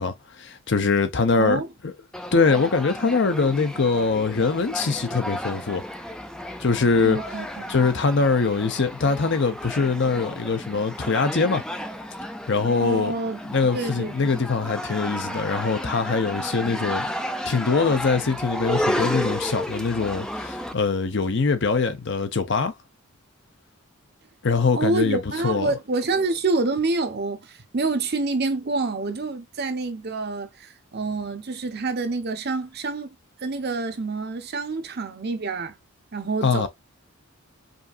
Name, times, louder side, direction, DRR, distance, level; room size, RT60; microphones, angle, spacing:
voice 1, 0.0-1.9 2.3-5.8 6.6-7.2 7.7-11.6 12.5-13.1 13.4-17.1 17.4-22.7 24.4-25.7 36.4-36.7, left 4 dB, 60° left, 0.7 m, -23 dB
voice 2, 1.4-1.7 7.0-7.9 12.8-13.4 13.7-14.4 24.7-33.1 33.4-35.7 36.1-36.7, right 3 dB, 50° right, 0.8 m, -27 dB
sound 1, 2.1-20.7, equal, 5° left, 0.4 m, -32 dB
5.2 x 2.7 x 2.5 m
head